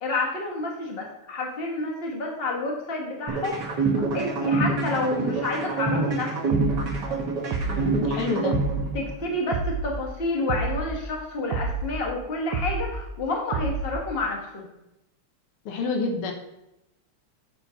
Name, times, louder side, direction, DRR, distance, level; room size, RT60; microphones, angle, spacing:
voice 1, 0.0-3.8 4.1-6.3 8.3-8.4 8.9-14.7, left 2 dB, 30° left, 0 dB, 1.5 m, -29 dB
sound 1, 3.3-9.3, right 3 dB, 55° right, 2.0 m, -26 dB
sound 2, 6.5-6.9 7.5-7.9 8.5-8.9 9.5-9.9 10.5-10.9 11.5-11.9 12.5-12.9 13.5-13.9, right 4 dB, 85° right, 1.6 m, -28 dB
voice 2, 7.7-8.6 15.7-16.3, left 3 dB, 85° left, 3 dB, 1.9 m, -28 dB
8.7 x 4.3 x 5.6 m, 0.90 s
omnidirectional pair, 2.4 m